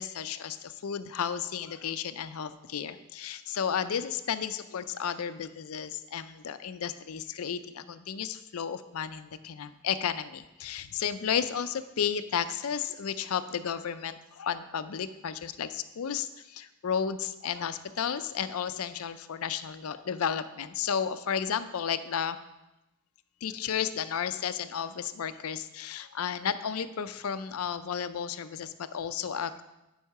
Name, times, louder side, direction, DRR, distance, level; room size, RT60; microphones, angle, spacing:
voice 1, 0.0-22.4 23.4-29.6, left 7 dB, 85° left, 12 dB, 0.5 m, -33 dB
10.0 x 5.6 x 4.8 m, 0.97 s
head